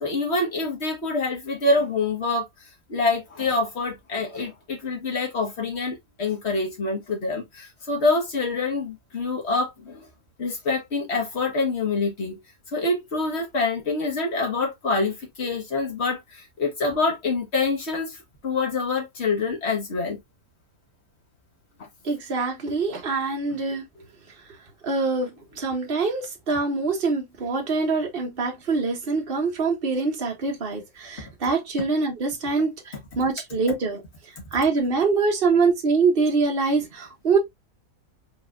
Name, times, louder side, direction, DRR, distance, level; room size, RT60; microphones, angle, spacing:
voice 1, 0.0-2.5 2.9-10.1 10.4-12.4 12.7-20.2 31.2-31.3, left 3 dB, 45° left, 1.8 m, -26 dB
voice 2, 22.0-23.8 24.8-34.0 34.5-37.4, right 4 dB, 35° right, 1.5 m, -24 dB
4.8 x 3.9 x 2.5 m
omnidirectional pair, 1.7 m